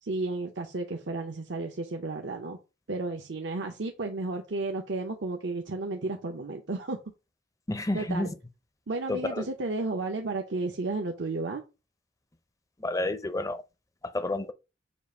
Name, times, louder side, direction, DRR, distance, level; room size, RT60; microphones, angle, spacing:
voice 1, 0.0-2.6 2.9-7.0 7.9-8.3 8.9-11.6, right 3 dB, 75° right, 0.8 m, -33 dB
voice 2, 7.7-8.3 9.1-9.5 12.8-13.6 14.0-14.5, left 2 dB, 20° left, 0.5 m, -30 dB
7.2 x 2.5 x 5.3 m
head